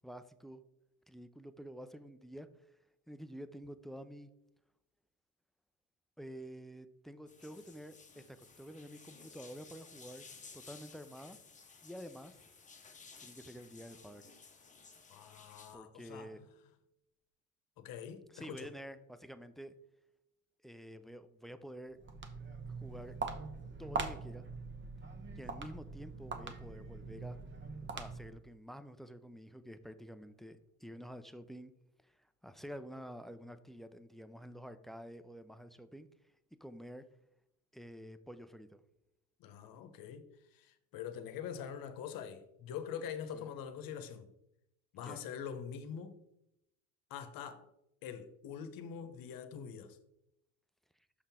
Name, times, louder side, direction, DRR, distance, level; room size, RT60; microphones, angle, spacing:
voice 1, 0.0-0.6 1.1-2.5 3.1-4.3 6.2-10.3 10.5-11.4 11.8-12.4 13.2-14.2 15.7-16.4 18.3-19.7 20.6-22.0 22.8-23.1 23.8-24.5 25.4-27.4 27.9-31.7 32.0-32.1 32.4-36.1 36.6-37.1 37.7-38.8 43.3-43.5 45.0-45.2, equal, ahead, 0.4 m, -49 dB
sound 1, 7.3-15.7, left 4 dB, 20° left, 1.1 m, -56 dB
voice 2, 15.1-16.4 17.8-18.7 39.4-44.3 44.9-46.2 47.1-47.7 48.0-50.0, left 8 dB, 55° left, 1.0 m, -44 dB
Walk footsteps, 21.9-28.4, right 4 dB, 25° right, 1.0 m, -42 dB
6.6 x 5.5 x 3.6 m
hypercardioid pair, 75°, 41 cm